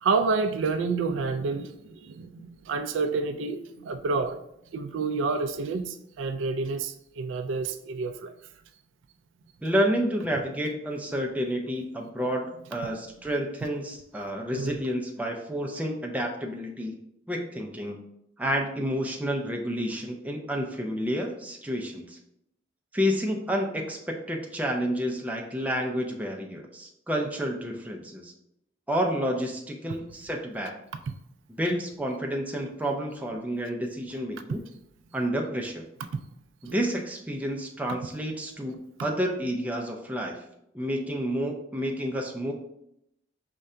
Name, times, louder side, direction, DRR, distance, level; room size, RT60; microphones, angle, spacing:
voice 1, 0.0-4.4 4.7-8.3 12.8-12.9 14.5-14.8 31.1-31.2 36.1-36.2 36.7-36.8, right 4 dB, 75° right, 8 dB, 0.3 m, -29 dB
voice 2, 9.6-12.4 12.7-16.9 17.3-18.0 18.4-22.2 22.9-28.3 28.9-30.8 31.5-34.6 35.1-35.8 36.6-40.4 40.7-42.5, equal, 10° right, 1 dB, 0.5 m, -30 dB
5.4 x 2.2 x 3.7 m, 0.79 s
head